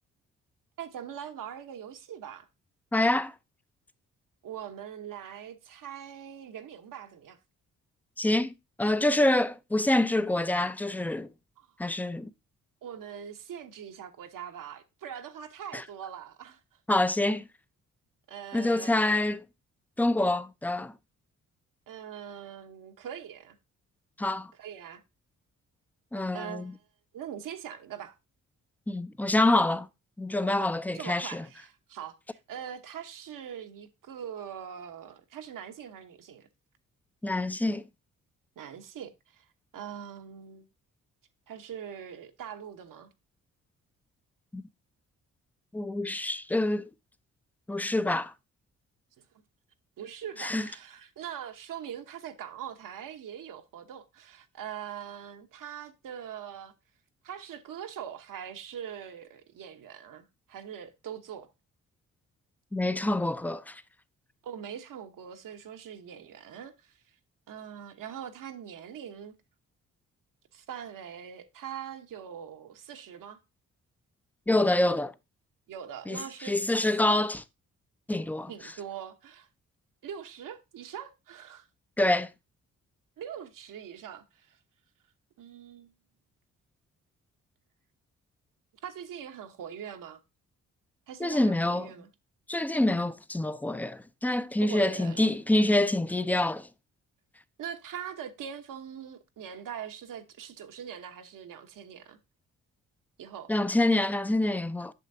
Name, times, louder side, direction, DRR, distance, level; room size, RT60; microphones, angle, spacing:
voice 1, 0.8-2.5 4.4-7.4 11.6-11.7 12.8-16.6 18.3-19.3 21.9-23.6 24.5-25.0 26.3-26.8 27.1-28.2 30.6-36.5 38.6-39.5 39.7-40.7 41.5-43.1 50.0-56.7 57.2-61.5 64.4-67.0 67.5-69.4 70.5-73.4 75.7-76.6 78.5-79.5 80.0-81.7 83.2-84.6 85.4-85.9 88.8-90.2 91.1-92.1 94.6-95.3 97.6-102.2 103.2-103.5, right 9 dB, 70° right, 1.0 m, -42 dB
voice 2, 2.9-3.3 8.2-8.5 8.8-11.3 11.8-12.3 15.7-15.8 16.9-17.5 18.5-19.4 20.0-20.9 24.2-24.5 26.1-26.7 28.9-29.9 30.2-31.5 37.2-37.8 44.5-44.6 45.7-46.9 47.7-48.3 50.4-50.7 62.7-63.8 74.5-75.1 76.1-76.2 76.4-77.4 78.1-78.5 82.0-82.3 91.2-91.9 92.5-96.7 103.5-104.9, left 1 dB, 5° left, 0.5 m, -26 dB
8.2 x 6.5 x 2.6 m
supercardioid pair, 55°, 34 cm